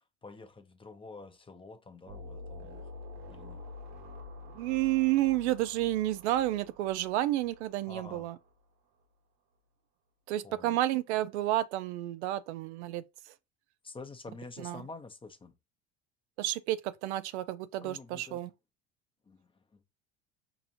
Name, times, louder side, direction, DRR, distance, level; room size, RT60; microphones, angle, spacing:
voice 1, 0.0-2.9 3.3-3.6 7.9-8.3 10.4-10.8 13.8-15.6 17.8-18.5 19.3-19.8, left 3 dB, 15° left, 0.6 m, -48 dB
sound 1, 2.1-8.5, left 2 dB, 55° right, 1.3 m, -48 dB
voice 2, 4.5-8.3 10.3-13.0 14.6-14.8 16.4-18.5, right 15 dB, 80° right, 0.5 m, -30 dB
4.8 x 2.9 x 2.6 m
hypercardioid pair, 85°, 33 cm